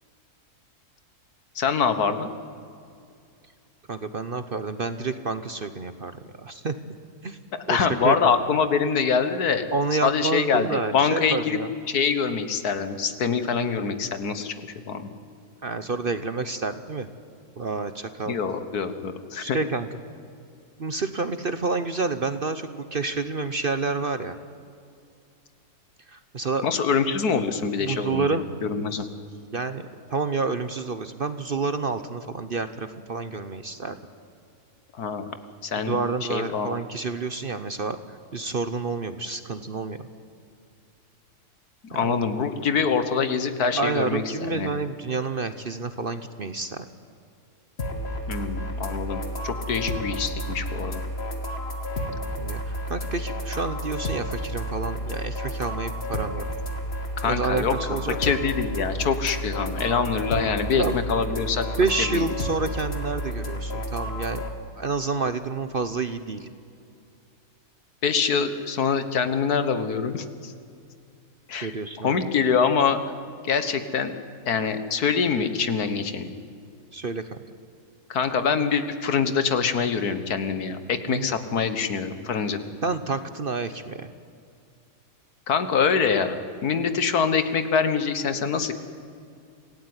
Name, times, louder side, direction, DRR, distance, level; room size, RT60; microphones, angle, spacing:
voice 1, 1.6-2.3 7.7-9.7 10.0-11.6 11.9-15.1 18.3-19.6 26.6-29.1 35.0-35.3 35.6-36.0 36.3-36.7 41.9-44.7 48.3-51.0 57.2-57.7 58.2-61.6 62.1-62.2 68.0-70.5 71.5-71.7 72.0-73.0 73.4-74.1 74.5-76.3 78.1-82.6 85.5-88.7, left 6 dB, 75° left, 10 dB, 1.9 m, -25 dB
voice 2, 3.9-6.1 6.4-7.0 7.2-7.4 7.7-8.3 9.7-11.7 15.6-17.1 17.6-18.3 19.4-19.9 20.8-24.4 26.1-26.7 27.8-28.4 29.0-29.1 29.5-29.8 30.1-34.0 35.8-40.1 41.9-42.2 43.8-46.8 52.4-56.4 57.2-58.2 60.8-61.0 61.8-64.4 64.8-66.5 71.6-72.2 76.9-77.4 81.1-81.3 82.8-84.1, right 4 dB, 40° right, 11 dB, 0.9 m, -29 dB
sound 1, 47.8-64.5, equal, 40° left, 2.3 m, -31 dB
26.5 x 17.0 x 9.7 m, 2.5 s
omnidirectional pair, 1.7 m